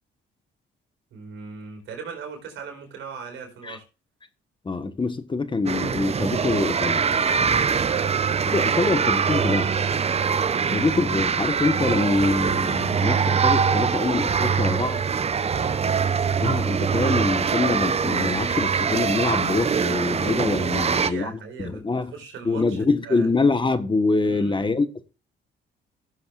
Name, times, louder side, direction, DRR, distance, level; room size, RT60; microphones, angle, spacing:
voice 1, 1.1-3.8 7.8-8.1 15.5-15.8 20.7-23.3 24.2-24.7, right 5 dB, 80° right, 4.5 m, -39 dB
voice 2, 4.6-7.0 8.5-9.7 10.7-15.0 16.4-22.1 22.4-25.1, left 3 dB, 25° left, 1.2 m, -25 dB
sound 1, 5.7-21.1, right 6 dB, 30° right, 0.6 m, -23 dB
15.5 x 7.8 x 2.4 m
cardioid pair, 90°, 20 cm